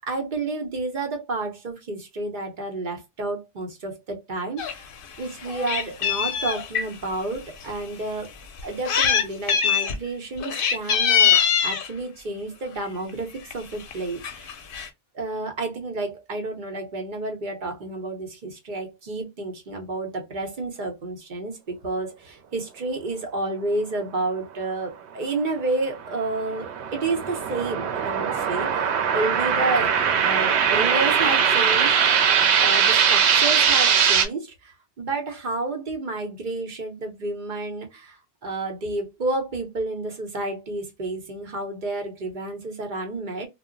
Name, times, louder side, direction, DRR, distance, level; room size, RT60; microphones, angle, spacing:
voice 1, 0.1-4.9 5.2-8.3 8.6-14.6 15.1-30.0 30.2-32.2 32.5-43.5, right 2 dB, 50° right, 0.9 m, -30 dB
Meow, 4.6-4.7 5.1-6.9 7.6-7.7 8.6-9.2 9.5-10.0 10.4-11.9 12.8-13.1 13.5-13.6 13.8-13.9 14.2-14.9, left 7 dB, 60° left, 0.7 m, -22 dB
sound 1, 25.9-34.3, right 7 dB, 85° right, 0.9 m, -21 dB
2.2 x 2.0 x 3.6 m
omnidirectional pair, 1.1 m